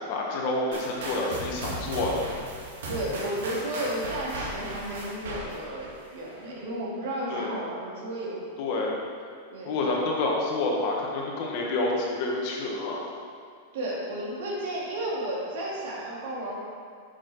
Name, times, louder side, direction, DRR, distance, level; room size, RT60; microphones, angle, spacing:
voice 1, 0.0-2.2 7.3-7.5 8.6-8.9 9.6-13.0, left 2 dB, 40° left, -1 dB, 1.3 m, -28 dB
sound 1, 0.7-6.6, right 1 dB, 80° right, 2.1 m, -37 dB
voice 2, 2.9-8.4 9.5-9.9 13.7-16.6, right 1 dB, 60° right, -4 dB, 2.2 m, -33 dB
8.2 x 6.5 x 4.1 m, 2.2 s
supercardioid pair, 170°, 0 cm